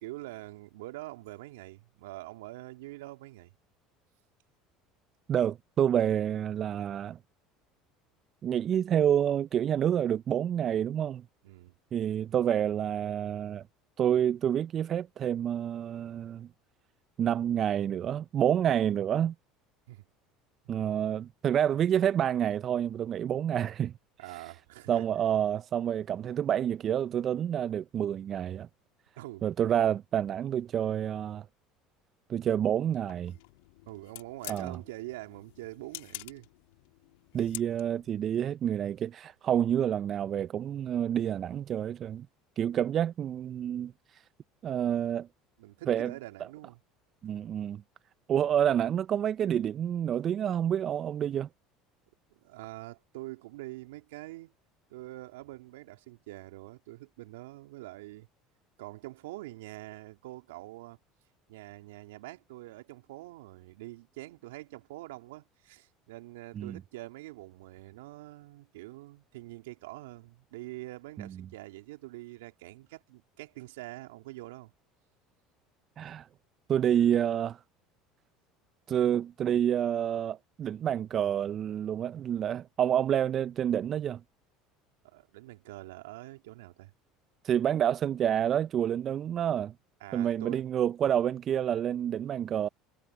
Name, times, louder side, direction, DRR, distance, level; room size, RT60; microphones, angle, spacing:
voice 1, 0.0-3.5 11.4-11.8 19.9-20.0 24.2-25.1 29.2-29.5 33.8-36.5 45.6-46.8 52.4-54.5 54.9-58.3 58.8-61.0 61.5-74.7 85.0-86.9 90.0-90.6, right 18 dB, 75° right, 3.0 m, -45 dB
voice 2, 5.3-7.2 8.4-11.2 11.9-13.6 14.0-16.5 17.2-19.3 20.7-23.9 24.3-24.4 24.9-28.7 29.4-31.5 32.3-33.3 34.5-34.8 37.3-42.3 42.6-44.2 44.6-45.3 45.9-46.1 47.2-47.8 48.3-51.5 66.6-66.8 71.2-71.3 76.0-76.3 76.7-77.6 78.9-84.2 87.4-89.7 90.1-92.7, right 9 dB, 45° right, 0.5 m, -28 dB
sound 1, 32.8-38.1, left 23 dB, 75° left, 2.3 m, -48 dB
hypercardioid pair, 75°, 0 cm